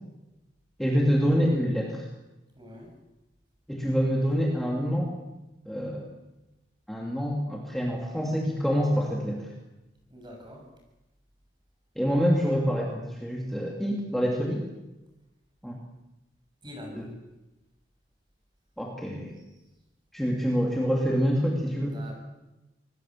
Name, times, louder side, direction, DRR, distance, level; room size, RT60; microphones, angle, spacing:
voice 1, 0.8-2.1 3.7-5.1 5.7-6.0 6.9-9.5 12.0-14.6 15.6-15.8 16.9-17.1 18.8-19.3 20.1-22.0, equal, ahead, -2 dB, 2.7 m, -26 dB
voice 2, 2.5-2.9 10.1-10.7 16.6-17.1 21.7-22.1, left 1 dB, 25° right, 2 dB, 6.9 m, -44 dB
26.0 x 20.0 x 7.8 m, 1.0 s
head